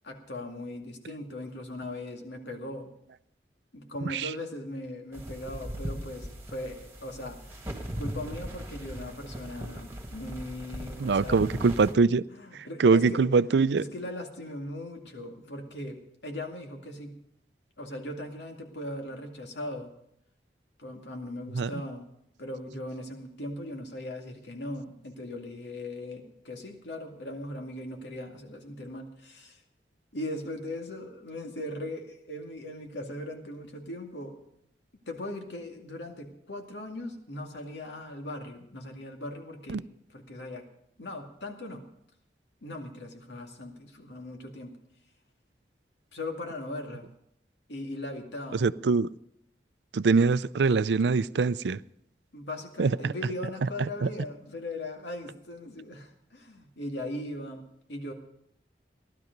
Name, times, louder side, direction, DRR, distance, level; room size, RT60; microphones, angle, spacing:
voice 1, 0.0-2.9 3.7-7.7 8.0-11.4 12.3-13.2 13.8-17.2 17.8-19.9 20.8-22.1 22.4-29.6 30.1-34.4 35.1-39.8 40.1-40.6 41.0-41.9 42.6-44.8 46.1-47.1 47.7-48.7 52.3-58.1, left 1 dB, 90° left, 3 dB, 2.3 m, -39 dB
sound 1, 5.1-11.9, equal, 15° right, 1.9 m, -39 dB
voice 2, 11.0-12.2 12.5-13.8 21.5-21.7 39.7-39.8 48.5-49.1 49.9-51.8 52.8-53.1 54.0-54.1, right 4 dB, 80° right, 17 dB, 0.4 m, -23 dB
16.0 x 12.0 x 5.3 m, 0.74 s
head